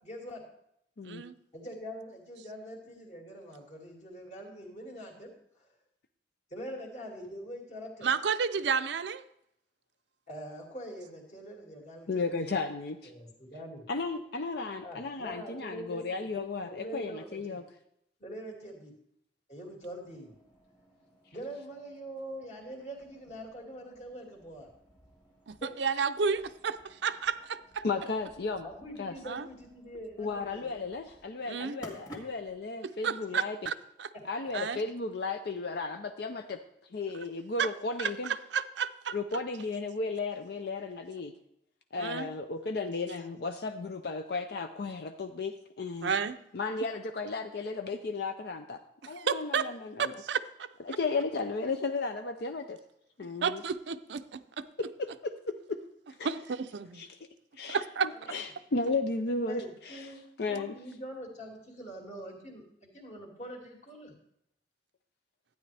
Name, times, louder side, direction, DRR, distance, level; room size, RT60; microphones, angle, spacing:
voice 1, 0.0-0.4 1.5-5.3 5.6-5.7 6.5-8.1 10.3-12.5 13.0-13.8 14.8-17.6 18.2-18.9 19.5-20.3 21.3-24.7 25.6-25.8 28.6-30.8 34.1-34.2 58.1-58.2 59.5-64.1, equal, 40° left, -1 dB, 2.4 m, -44 dB
voice 2, 1.0-1.3 8.0-9.2 25.5-27.8 29.3-29.5 31.5-31.8 33.0-33.7 34.0-34.1 34.5-34.8 37.6-37.7 38.0-39.2 42.0-42.3 46.0-46.4 49.2-49.7 50.0-50.7 53.4-54.6 56.2-57.0 57.7-58.1, right 6 dB, 85° right, 11 dB, 0.5 m, -31 dB
voice 3, 12.1-13.1 13.9-17.6 27.8-28.7 29.0-29.1 30.2-33.7 34.3-36.6 36.9-38.3 39.1-41.3 41.9-46.1 46.5-48.8 49.1-50.1 50.8-52.8 53.2-53.6 54.8-55.8 56.2-56.3 56.9-57.2 57.6-60.1 60.4-60.8, left 3 dB, 65° left, 7 dB, 0.5 m, -34 dB
sound 1, 19.8-32.7, equal, 25° left, 2.0 m, -56 dB
12.5 x 9.4 x 3.4 m, 0.75 s
head